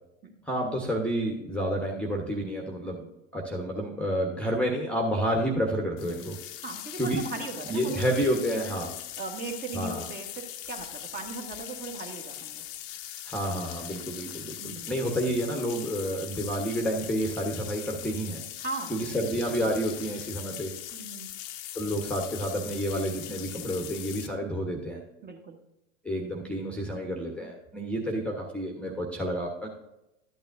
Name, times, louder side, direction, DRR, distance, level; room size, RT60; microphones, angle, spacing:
voice 1, 0.5-3.0 3.3-6.4 7.0-7.2 7.7-8.9 9.7-10.1 13.3-18.4 18.9-20.7 21.7-25.0 26.0-29.7, equal, 5° left, 1 dB, 1.2 m, -29 dB
sound 1, 6.0-24.3, left 12 dB, 45° left, 0.8 m, -41 dB
voice 2, 6.6-8.4 8.6-8.7 9.2-12.6 14.6-15.0 18.6-19.2 20.9-21.3 25.2-25.6, right 3 dB, 25° right, 3 dB, 1.5 m, -38 dB
12.5 x 8.8 x 2.7 m, 0.91 s
hypercardioid pair, 100°, 39 cm